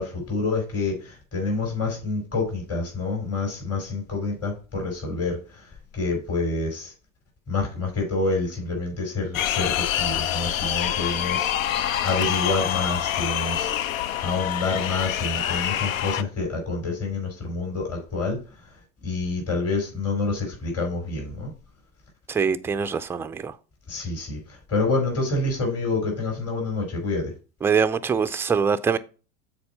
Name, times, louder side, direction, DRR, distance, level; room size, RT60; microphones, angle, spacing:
voice 1, 0.0-5.6 5.9-6.9 7.5-11.5 12.0-13.7 14.2-18.4 19.0-21.5 23.9-24.4 24.7-27.3, left 3 dB, 35° left, 4.2 m, -27 dB
sound 1, 9.3-16.2, left 11 dB, 80° left, 0.6 m, -26 dB
voice 2, 22.3-23.5 27.6-29.0, right 6 dB, 5° right, 0.3 m, -23 dB
6.9 x 4.5 x 5.4 m
hypercardioid pair, 80°, 40 cm